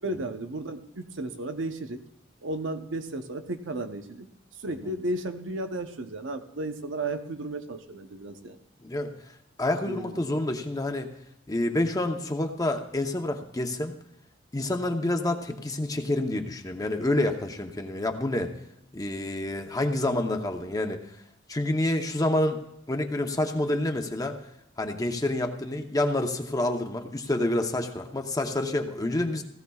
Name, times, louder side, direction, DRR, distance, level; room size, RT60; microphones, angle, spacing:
voice 1, 0.0-2.0 2.4-4.3 4.6-8.6 9.9-10.2, right 2 dB, 85° right, 7 dB, 0.9 m, -34 dB
voice 2, 8.8-9.1 9.6-11.1 11.5-13.9 14.5-18.5 18.9-21.0 21.5-22.6 22.9-24.4 24.8-29.4, left 1 dB, 20° left, 5 dB, 0.8 m, -28 dB
16.5 x 14.5 x 2.4 m, 0.78 s
head